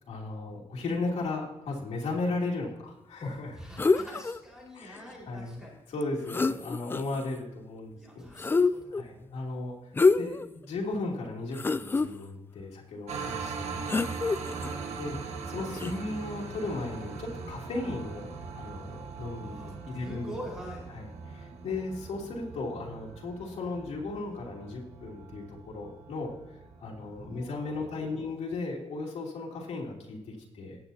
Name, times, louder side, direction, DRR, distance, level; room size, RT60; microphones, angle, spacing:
voice 1, 0.1-3.6 4.7-8.3 8.9-14.3 15.0-20.3 20.9-30.8, left 3 dB, 85° left, -3 dB, 3.1 m, -36 dB
voice 2, 3.5-5.7 7.9-9.1 13.1-13.3 14.5-14.8 19.4-20.9 26.9-28.2, equal, 5° right, -3 dB, 4.8 m, -45 dB
sound 1, 3.8-4.4 6.0-6.1 6.3-7.2 8.4-9.0 9.9-10.5 10.9-11.0 11.5-12.1 13.9-14.7 15.7-15.9, left 4 dB, 20° left, 0.4 m, -26 dB
sound 2, 13.1-27.9, right 5 dB, 90° right, 1.5 m, -41 dB
19.5 x 8.6 x 2.8 m, 0.96 s
wide cardioid pair, 130°, 11 cm